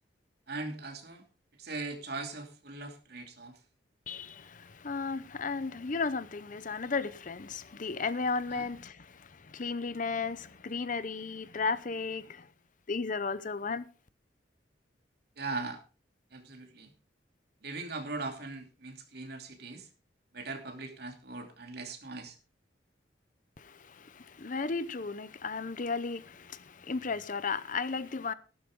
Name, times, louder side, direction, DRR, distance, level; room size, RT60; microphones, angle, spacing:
voice 1, 0.5-1.2 1.6-3.6 8.5-8.7 15.4-15.8 16.3-16.9 17.6-19.9 20.3-22.4, right 3 dB, 60° right, 2.9 m, -40 dB
voice 2, 4.1-12.5 12.9-13.9 23.6-28.3, left 4 dB, 45° left, 0.7 m, -34 dB
14.5 x 12.0 x 3.7 m
head